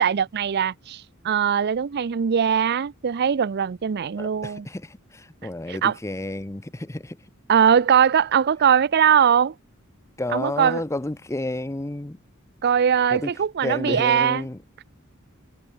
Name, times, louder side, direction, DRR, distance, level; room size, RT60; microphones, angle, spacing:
voice 1, 0.0-4.7 5.7-6.0 7.5-9.5 10.3-10.8 12.6-14.5, right 8 dB, 50° right, 0.5 m, -21 dB
voice 2, 4.2-7.2 10.2-12.2 13.1-13.3 13.6-14.6, left 1 dB, 15° left, 0.7 m, -30 dB
head